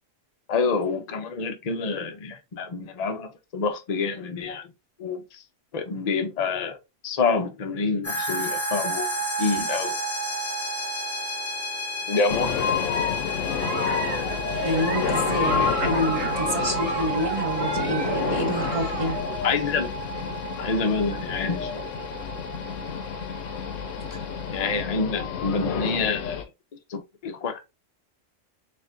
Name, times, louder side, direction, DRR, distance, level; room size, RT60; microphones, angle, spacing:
voice 1, 0.5-4.7 5.0-5.4 5.7-6.8 7.0-9.1 9.4-10.0 12.1-12.7 19.4-19.9 20.2-20.3 20.6-21.9 24.5-26.4 26.9-27.6, left 4 dB, 40° left, 0.6 m, -27 dB
sound 1, 8.0-24.8, right 2 dB, 55° left, 1.7 m, -32 dB
sound 2, 12.3-26.4, left 7 dB, 75° left, 1.0 m, -29 dB
Giggle, 12.5-19.2, right 3 dB, 75° right, 1.3 m, -33 dB
voice 2, 14.6-19.2 24.1-24.2, equal, 35° right, 0.6 m, -28 dB
4.3 x 3.4 x 2.5 m
omnidirectional pair, 1.3 m